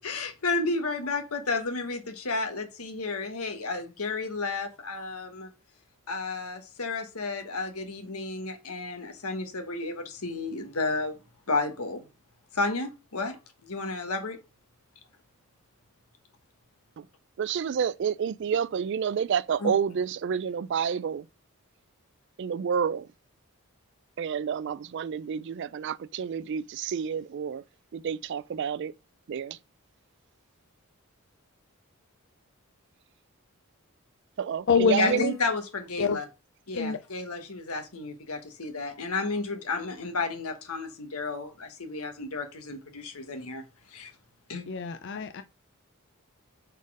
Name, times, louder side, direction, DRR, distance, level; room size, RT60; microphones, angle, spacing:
voice 1, 0.0-5.5 6.1-11.2 11.5-12.0 12.5-14.4 19.6-19.7 35.0-36.2 36.7-44.1 44.5-44.6, left 3 dB, 80° left, 1.4 m, -32 dB
voice 2, 17.4-21.3 22.4-23.1 24.2-27.6 27.9-28.9 29.3-29.6 34.4-35.4, right 7 dB, 55° right, 0.3 m, -29 dB
voice 3, 34.7-35.2 36.0-36.2 36.7-37.0 44.7-45.4, left 6 dB, 55° left, 0.5 m, -25 dB
5.4 x 4.2 x 4.8 m
head